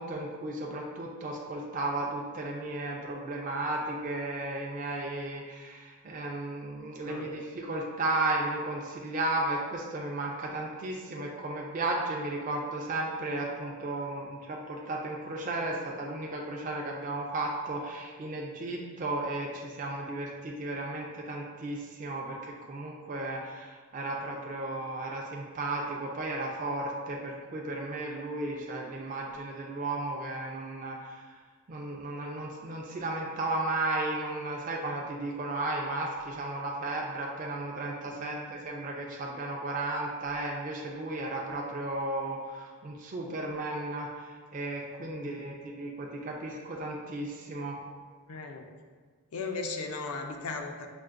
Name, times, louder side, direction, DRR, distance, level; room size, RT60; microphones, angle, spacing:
voice 1, 0.0-31.3 31.7-47.8, right 2 dB, 35° right, -1 dB, 0.4 m, -34 dB
voice 2, 38.0-38.5 45.0-45.6 48.3-48.7 49.3-50.9, left 3 dB, 85° left, 4 dB, 0.5 m, -38 dB
5.9 x 2.5 x 2.4 m, 1.5 s
head